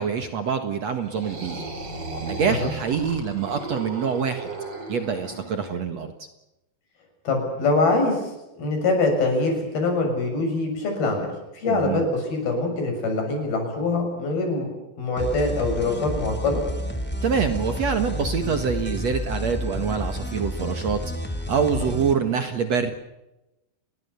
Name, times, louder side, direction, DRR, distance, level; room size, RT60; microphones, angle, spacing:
voice 1, 0.0-1.6 2.2-4.5 4.9-6.1 11.7-12.0 17.2-21.0 21.5-22.9, right 6 dB, 55° right, 8 dB, 2.4 m, -25 dB
sound 1, 1.0-5.8, right 3 dB, 30° right, 4.3 m, -35 dB
voice 2, 7.3-8.2 8.6-14.7 15.0-16.6 21.8-21.9, left 3 dB, 85° left, 3 dB, 8.9 m, -24 dB
sound 2, 15.2-22.1, equal, 5° left, 2.6 m, -30 dB
30.0 x 21.5 x 7.0 m, 0.95 s
omnidirectional pair, 4.2 m